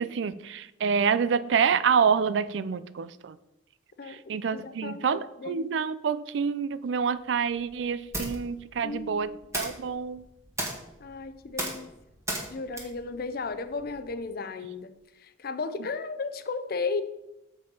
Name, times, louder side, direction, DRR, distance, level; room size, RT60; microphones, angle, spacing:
voice 1, 0.0-3.4 4.3-10.2, right 6 dB, 75° right, 16 dB, 0.4 m, -27 dB
voice 2, 4.0-5.8 8.8-9.5 11.0-11.9 12.5-14.9 15.2-17.0, left 4 dB, 55° left, 11 dB, 0.6 m, -35 dB
sound 1, 7.0-14.2, right 1 dB, 15° right, 1.6 m, -38 dB
7.0 x 5.4 x 5.4 m, 0.92 s
head